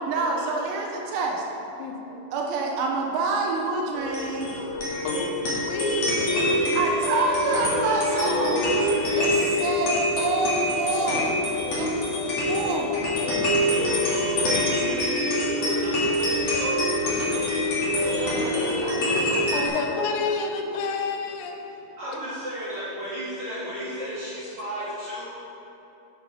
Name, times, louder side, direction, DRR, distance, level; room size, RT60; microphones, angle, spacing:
voice 1, 0.1-1.4 2.3-4.5 6.7-8.8 9.2-11.4 11.7-13.1 14.4-14.5 15.0-15.1 18.0-19.8 22.0-22.2, right 3 dB, 80° right, 0 dB, 3.0 m, -28 dB
voice 2, 1.8-2.2 4.5-6.6 13.6-13.9 19.5-21.9, left 4 dB, 85° left, 3 dB, 3.4 m, -30 dB
sound 1, 3.9-19.7, left 1 dB, 45° left, 1.9 m, -25 dB
voice 3, 6.2-9.6 13.7-17.7 18.1-18.8 19.2-19.5 22.0-25.3, equal, 60° right, -11 dB, 2.1 m, -33 dB
9.0 x 8.6 x 3.6 m, 3.0 s
omnidirectional pair, 5.8 m